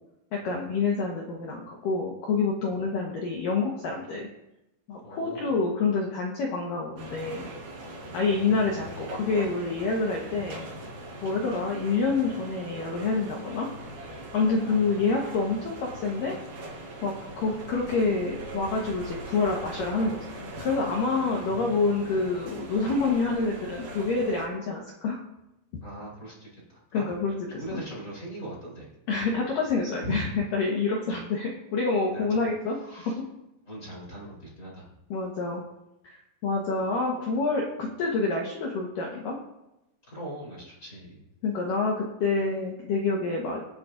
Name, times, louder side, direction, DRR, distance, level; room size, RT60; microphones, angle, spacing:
voice 1, 0.3-4.3 4.9-7.5 8.1-10.6 11.2-13.7 14.3-16.4 17.0-25.2 26.9-27.6 29.1-33.1 35.1-35.6 36.0-39.3 41.4-43.6, left 4 dB, 80° left, -1 dB, 1.9 m, -27 dB
voice 2, 5.0-5.5 8.0-8.7 11.2-11.4 14.5-15.0 21.1-21.8 25.8-28.9 30.0-30.2 32.1-32.4 32.9-33.2 33.6-34.9 40.0-41.2, right 1 dB, 20° left, -5 dB, 3.1 m, -41 dB
sound 1, 7.0-24.5, right 1 dB, 55° right, 5.7 m, -41 dB
25.0 x 9.0 x 2.6 m, 0.91 s
omnidirectional pair, 5.8 m